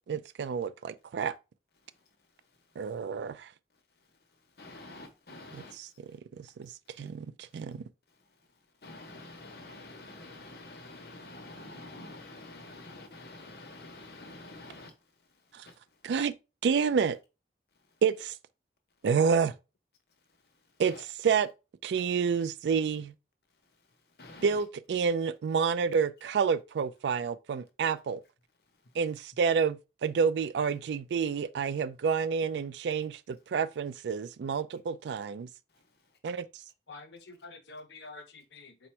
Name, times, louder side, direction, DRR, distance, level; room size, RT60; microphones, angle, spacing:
voice 1, 0.1-1.3 2.8-3.5 5.5-5.9 6.4-6.7 7.0-7.8 15.5-15.7 16.0-16.3 16.6-17.2 18.0-18.4 19.0-19.5 20.8-20.9 21.2-21.5 21.8-23.1 24.4-28.2 28.9-35.5 36.2-36.5, right 6 dB, 80° right, 0.3 m, -29 dB
voice 2, 1.8-3.0 4.0-6.2 6.6-7.1 7.5-7.7 8.1-16.0 20.4-21.0 23.6-24.6 28.8-28.9 35.7-36.2, left 2 dB, 65° left, 1.0 m, -50 dB
voice 3, 36.9-38.9, left 3 dB, 90° left, 0.8 m, -48 dB
4.2 x 2.1 x 4.4 m
head